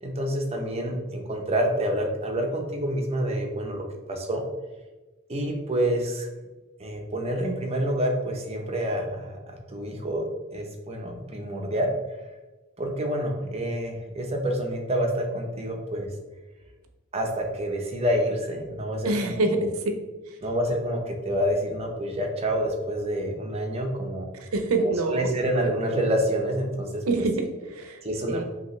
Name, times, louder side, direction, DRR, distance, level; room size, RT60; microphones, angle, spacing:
voice 1, 0.0-4.4 5.3-6.3 6.8-9.4 9.7-10.3 10.5-11.9 12.8-16.1 17.1-19.7 20.4-24.3 24.8-27.2 28.0-28.4, equal, 30° right, 2 dB, 0.7 m, -28 dB
voice 2, 19.0-19.7 24.4-25.3 27.1-28.0 28.3-28.4, right 2 dB, 70° right, 5 dB, 0.6 m, -25 dB
5.3 x 2.9 x 3.1 m, 1.2 s
head